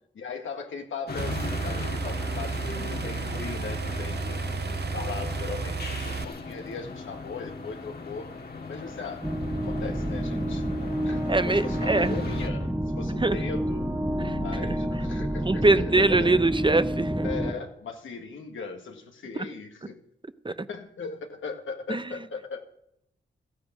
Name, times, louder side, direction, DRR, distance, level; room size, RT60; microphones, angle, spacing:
voice 1, 0.1-8.3 8.7-9.2 9.6-10.6 11.0-13.9 14.4-16.4 17.2-20.0 20.7-22.7, left 5 dB, 85° left, 3 dB, 1.9 m, -38 dB
sound 1, 1.1-12.5, left 3 dB, 55° left, 2.0 m, -38 dB
sound 2, 1.2-6.2, right 5 dB, 55° right, 0.7 m, -32 dB
sound 3, 9.2-17.5, equal, 10° right, 1.6 m, -29 dB
voice 2, 11.3-12.2 13.2-13.4 14.2-14.4 15.5-17.3 20.4-20.7 21.9-22.0, right 2 dB, 25° right, 13 dB, 0.8 m, -23 dB
14.0 x 9.9 x 7.5 m, 0.76 s
cardioid pair, 50°, 20 cm